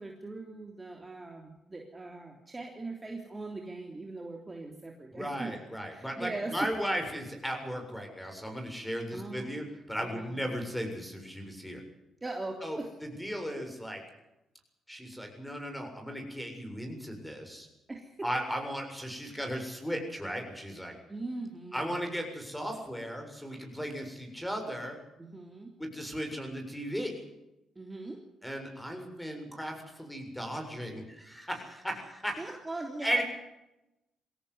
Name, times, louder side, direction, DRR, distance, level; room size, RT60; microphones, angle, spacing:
voice 1, 0.0-5.6 5.9-6.7 9.1-9.5 10.0-10.4 12.2-12.9 13.6-13.7 17.9-18.3 21.1-21.9 25.2-25.7 27.7-28.2 32.4-33.2, right 2 dB, 20° right, 2 dB, 3.3 m, -40 dB
voice 2, 5.1-11.8 12.6-14.0 14.9-17.7 18.2-20.9 21.7-25.0 25.8-27.1 28.4-32.5 33.0-33.2, equal, 5° left, 4 dB, 7.4 m, -36 dB
23.0 x 17.0 x 8.2 m, 0.92 s
cardioid pair, 90°, 0 cm